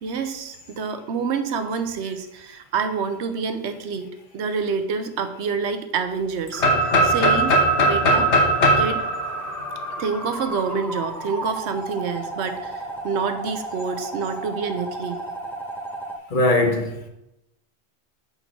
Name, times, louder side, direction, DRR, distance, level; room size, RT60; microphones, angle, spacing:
voice 1, 0.0-8.3 8.8-9.0 10.0-15.2, right 5 dB, 90° right, 1.0 m, -27 dB
sound 1, 6.5-16.2, right 2 dB, 5° left, 0.4 m, -33 dB
sound 2, 6.6-10.4, right 1 dB, 85° left, 1.3 m, -19 dB
voice 2, 16.3-17.1, left 2 dB, 50° left, 1.1 m, -20 dB
5.4 x 4.3 x 5.9 m
omnidirectional pair, 1.1 m